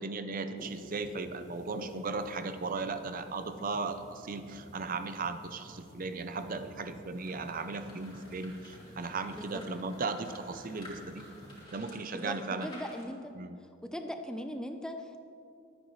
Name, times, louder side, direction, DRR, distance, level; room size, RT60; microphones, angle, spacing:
voice 1, 0.0-11.2 11.7-12.7 13.4-13.6, right 3 dB, 40° right, 9 dB, 0.5 m, -37 dB
sound 1, 0.6-11.7, equal, 15° right, 1.9 m, -52 dB
sound 2, 7.1-13.0, left 1 dB, 20° left, 3.6 m, -52 dB
voice 2, 12.1-13.3 13.9-15.2, equal, 5° left, 5 dB, 0.5 m, -39 dB
23.0 x 9.5 x 3.2 m, 2.5 s
head